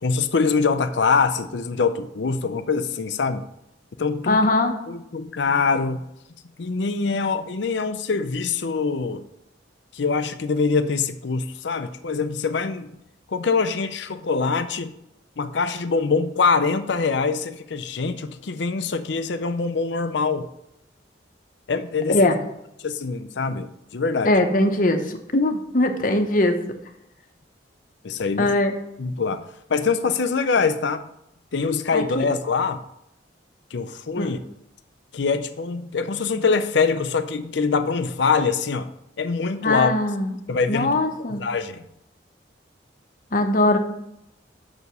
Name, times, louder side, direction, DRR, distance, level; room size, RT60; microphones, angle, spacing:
voice 1, 0.0-3.4 4.0-4.4 4.9-6.1 6.6-9.2 9.9-12.9 13.3-14.9 15.4-20.5 21.7-22.2 22.8-24.3 28.0-28.5 29.0-31.1 31.5-32.8 33.7-34.4 35.1-38.9 39.2-39.9 40.5-41.0 41.4-41.9, left 4 dB, 65° left, 10 dB, 0.5 m, -24 dB
voice 2, 4.3-4.8 22.1-22.4 24.2-26.6 28.4-28.7 31.9-32.3 34.2-34.3 39.6-40.4 40.7-41.4 43.3-43.8, left 2 dB, 45° left, 6 dB, 0.9 m, -21 dB
6.6 x 4.7 x 6.7 m, 0.81 s
head